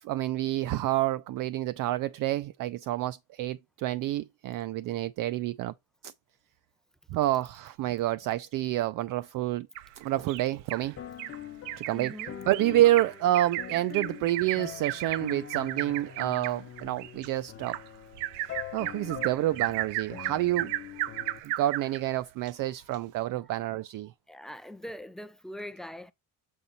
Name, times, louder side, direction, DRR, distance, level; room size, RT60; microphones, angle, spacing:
voice 1, 0.0-5.7 6.0-6.1 7.1-9.7 10.0-11.0 11.8-17.8 18.4-20.7 21.4-24.1, right 14 dB, 50° right, 0.5 m, -28 dB
Bird vocalization bird call bird song, 9.7-10.8 11.2-11.4 11.6-22.0 22.5-22.6 22.9-23.0, right 15 dB, 80° right, 0.7 m, -35 dB
sound 1, 11.0-21.4, left 11 dB, 30° left, 0.9 m, -43 dB
voice 2, 11.9-12.4 24.3-26.1, left 1 dB, ahead, 0.6 m, -42 dB
7.3 x 4.0 x 4.0 m
cardioid pair, 110°, 42 cm